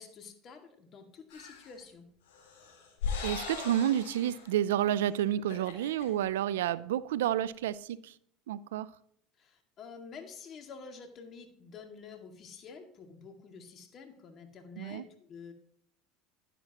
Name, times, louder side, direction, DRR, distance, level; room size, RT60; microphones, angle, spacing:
voice 1, 0.0-2.1 9.4-15.5, left 5 dB, 45° left, 2.1 m, -49 dB
sound 1, 1.3-1.8 2.3-4.5 4.9-5.0 5.4-6.1, left 6 dB, 75° left, 3.8 m, -39 dB
voice 2, 3.2-8.1 8.5-8.9 14.8-15.0, right 11 dB, 90° right, 0.4 m, -30 dB
11.5 x 10.0 x 3.0 m
supercardioid pair, 95°, 0 cm